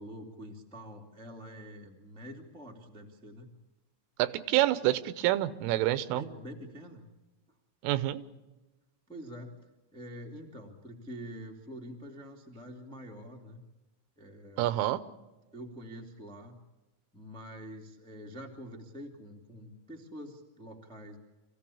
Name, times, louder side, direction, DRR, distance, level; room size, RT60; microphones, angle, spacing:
voice 1, 0.0-3.5 6.1-7.1 9.1-9.7 9.9-13.6 14.2-14.8 15.5-16.5 17.1-21.2, equal, 5° left, 1 dB, 0.4 m, -46 dB
voice 2, 4.2-6.2 7.8-8.2 14.6-15.0, right 15 dB, 85° right, 14 dB, 3.5 m, -27 dB
26.5 x 16.0 x 8.5 m, 1.1 s
omnidirectional pair, 5.7 m